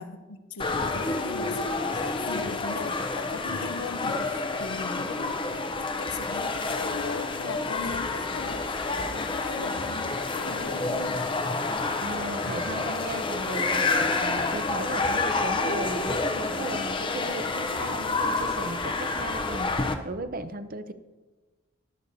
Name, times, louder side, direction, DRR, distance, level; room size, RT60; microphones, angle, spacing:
voice 1, 0.0-11.3, left 4 dB, 90° left, 0.7 m, -39 dB
sound 1, 0.6-19.9, left 3 dB, 25° left, 0.5 m, -29 dB
voice 2, 12.0-20.9, right 2 dB, 40° right, 0.6 m, -36 dB
20.5 x 8.2 x 2.7 m
head